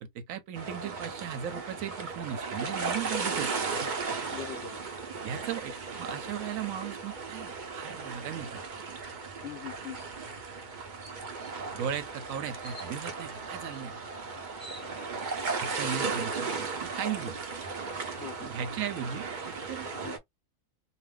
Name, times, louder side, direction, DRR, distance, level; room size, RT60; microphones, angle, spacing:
voice 1, 0.0-3.5 5.2-8.6 11.7-13.9 15.6-17.4 18.4-19.9, right 9 dB, 70° right, 0.9 m, -37 dB
sound 1, 0.5-20.2, right 4 dB, 85° right, 0.4 m, -36 dB
voice 2, 4.3-4.8 9.4-10.0 14.0-14.4 14.8-15.2 18.1-18.5 19.9-20.2, left 9 dB, 60° left, 0.8 m, -43 dB
sound 2, 10.0-10.2 10.6-10.7 11.0-11.5 12.6-12.9 14.1-14.2 14.4-15.3, left 1 dB, 20° left, 0.4 m, -49 dB
2.5 x 2.1 x 3.4 m
omnidirectional pair, 1.7 m